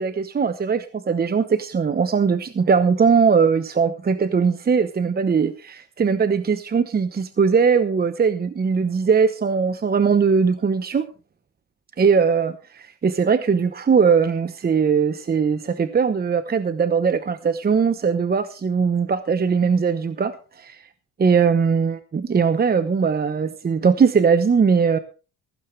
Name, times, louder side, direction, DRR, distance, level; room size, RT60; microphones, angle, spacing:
voice 1, 0.0-11.1 12.0-20.8 21.2-25.0, right 6 dB, 30° right, 0.9 m, -20 dB
15.5 x 15.5 x 3.3 m
cardioid pair, 90°, 30 cm